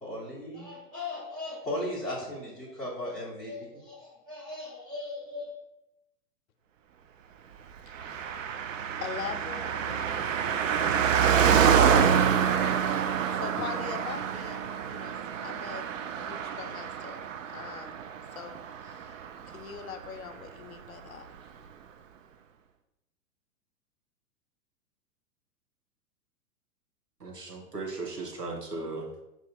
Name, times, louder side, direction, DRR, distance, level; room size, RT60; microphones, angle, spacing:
voice 1, 0.0-5.6, left 1 dB, ahead, -8 dB, 0.5 m, -37 dB
Car passing by, 7.9-19.8 20.0-20.1, right 7 dB, 55° right, 0.5 m, -27 dB
voice 2, 9.0-10.1 13.3-15.1 15.4-15.9 16.2-18.0 18.3-19.2 19.5-21.3, left 7 dB, 65° left, 8 dB, 0.5 m, -41 dB
voice 3, 27.2-29.2, right 3 dB, 90° right, 0 dB, 0.9 m, -37 dB
4.8 x 2.5 x 3.7 m, 0.90 s
figure-of-eight pair, 105°, 46 cm